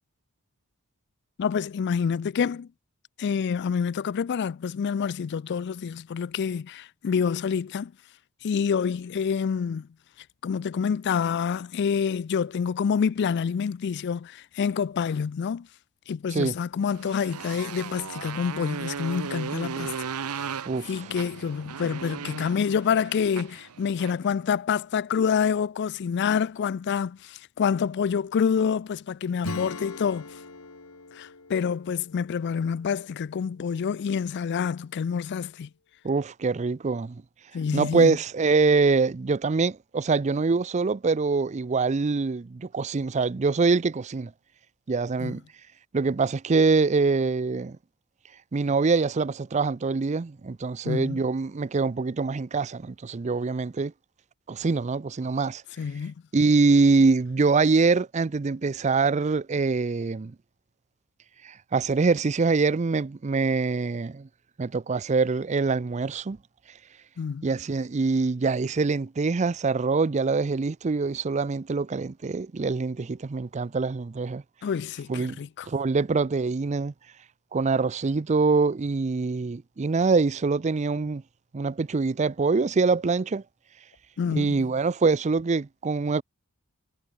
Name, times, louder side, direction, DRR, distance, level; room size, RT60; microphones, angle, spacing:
voice 1, 1.4-2.7 3.2-7.9 8.4-9.9 10.4-15.7 16.1-30.3 31.1-35.7 37.5-38.2 45.2-45.3 50.8-51.2 55.8-56.1 67.2-67.4 74.6-75.7 84.2-84.7, left 6 dB, 50° left, 0.3 m, -27 dB
Motorcycle, 16.9-24.3, right 6 dB, 85° right, 0.7 m, -36 dB
voice 2, 20.7-21.0 36.0-37.2 37.7-44.3 44.9-45.4 45.9-47.8 48.5-53.9 54.5-55.6 56.3-60.3 61.4-64.3 64.6-66.4 67.4-74.4 75.1-75.4 75.7-76.9 77.5-81.2 81.5-83.4 84.3-86.2, right 4 dB, 30° right, 0.4 m, -24 dB
Acoustic guitar / Strum, 29.4-33.7, left 2 dB, 70° left, 2.0 m, -40 dB
head